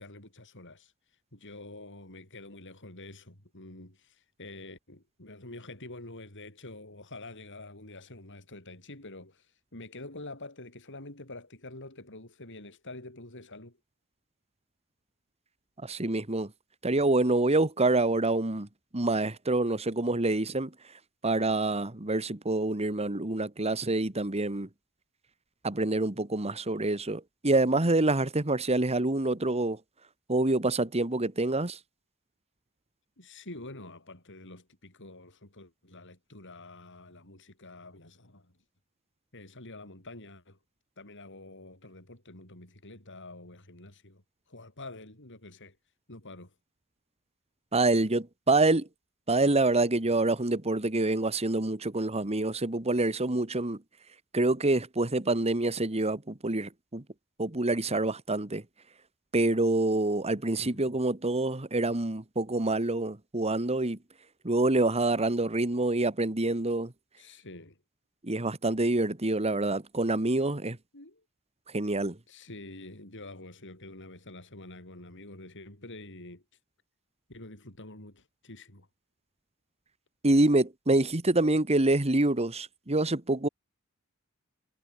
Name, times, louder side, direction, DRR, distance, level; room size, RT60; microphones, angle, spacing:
voice 1, 0.0-13.8 33.2-38.6 39.3-40.6 41.0-45.8 46.1-46.5 60.6-60.9 67.2-67.8 70.9-71.2 72.3-76.6 77.3-78.9, left 2 dB, 60° left, 7.8 m, -47 dB
voice 2, 15.8-16.5 16.8-18.7 18.9-20.7 21.2-24.7 25.6-29.8 30.3-31.8 47.7-48.9 49.3-53.8 54.3-57.0 57.4-58.6 59.3-64.0 64.4-66.9 68.2-70.8 71.7-72.2 80.2-83.5, right 2 dB, 30° right, 1.7 m, -26 dB
head